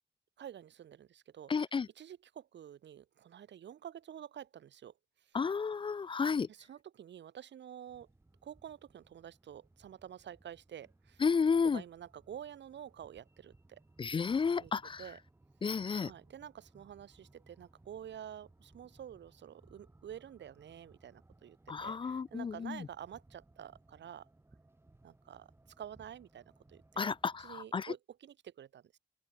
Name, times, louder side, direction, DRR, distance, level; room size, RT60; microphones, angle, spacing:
voice 1, 0.4-1.5 1.9-4.9 5.2-5.4 6.5-8.1 8.4-11.2 11.6-13.8 14.6-14.7 15.0-15.2 16.0-24.3 25.0-25.5 25.8-27.1 27.4-29.0, right 10 dB, 85° right, 1.5 m, -49 dB
voice 2, 1.5-1.9 5.3-6.5 11.2-11.8 14.0-15.0 15.6-16.1 21.7-22.9 27.0-27.9, left 5 dB, 30° left, 0.4 m, -32 dB
sound 1, 7.9-27.7, right 2 dB, 15° right, 5.2 m, -64 dB
open air
wide cardioid pair, 170°, 18 cm